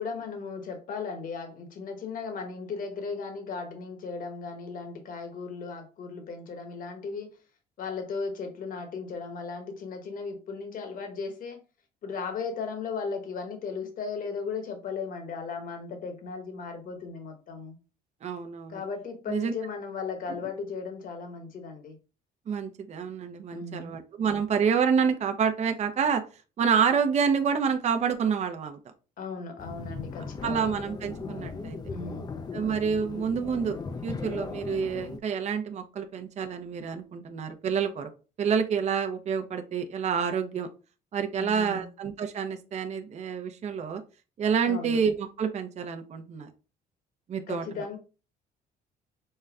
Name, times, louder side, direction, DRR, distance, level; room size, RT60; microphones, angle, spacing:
voice 1, 0.0-7.3 7.8-11.6 12.0-17.8 18.7-22.0 23.5-23.9 29.2-30.7 31.9-32.3 41.4-41.9 44.7-45.0 47.5-48.0, left 5 dB, 55° left, 1.2 m, -36 dB
voice 2, 18.2-18.8 19.3-19.5 22.5-26.2 26.6-28.8 30.4-31.8 32.5-33.8 34.0-38.1 38.4-40.7 41.1-44.0 44.4-46.5 47.3-47.8, right 6 dB, 40° right, 0.7 m, -28 dB
sound 1, 29.6-35.2, left 4 dB, 25° left, 0.5 m, -38 dB
5.5 x 2.2 x 3.6 m
cardioid pair, 110°, 17 cm